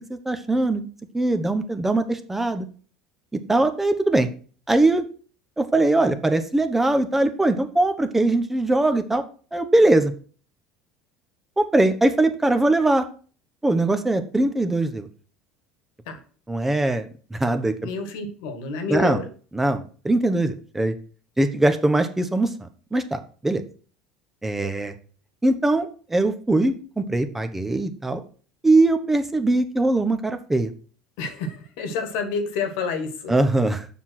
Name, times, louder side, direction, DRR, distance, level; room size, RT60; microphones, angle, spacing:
voice 1, 0.1-0.8 1.1-2.7 3.5-4.3 4.7-5.0 5.6-9.2 9.5-10.1 11.6-13.0 13.6-15.1 16.5-17.7 18.9-19.2 19.5-20.9 21.4-23.6 24.4-24.9 25.4-28.2 28.6-30.7 33.3-33.9, right 2 dB, 10° right, 8 dB, 1.1 m, -21 dB
voice 2, 17.8-19.3 31.2-33.3, left 4 dB, 65° left, 7 dB, 1.9 m, -29 dB
7.4 x 5.8 x 6.2 m, 0.41 s
hypercardioid pair, 70°, 2 cm